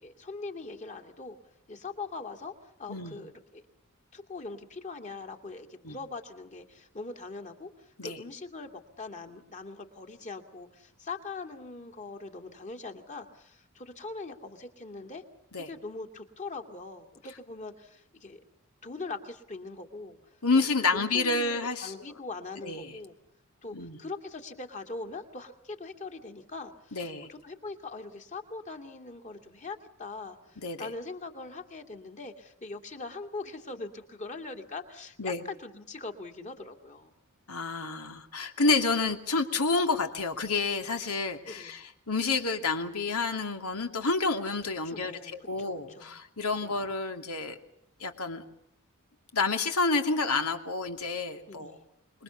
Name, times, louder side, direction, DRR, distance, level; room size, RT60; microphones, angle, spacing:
voice 1, 0.0-1.4 1.7-3.6 4.1-15.2 15.6-18.4 18.8-20.2 20.5-20.7 20.9-23.1 23.6-37.1 41.5-41.8 44.8-46.2 46.6-46.8 51.5-51.9, left 3 dB, 35° left, 6 dB, 2.4 m, -42 dB
voice 2, 20.4-21.9 22.6-22.9 23.7-24.0 26.9-27.3 30.6-30.9 35.2-35.4 37.5-47.6 48.0-48.4 49.3-51.7, left 3 dB, 90° left, 6 dB, 2.7 m, -29 dB
26.0 x 22.0 x 7.1 m, 0.75 s
head